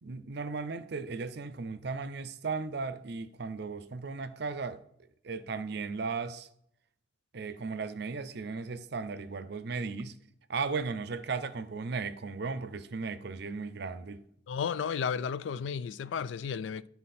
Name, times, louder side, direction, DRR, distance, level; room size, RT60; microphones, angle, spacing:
voice 1, 0.0-4.8 5.2-6.5 7.3-10.2 10.5-14.2, right 4 dB, 60° right, 0.6 m, -36 dB
voice 2, 14.5-16.9, left 6 dB, 80° left, 0.3 m, -33 dB
11.0 x 4.1 x 4.2 m
head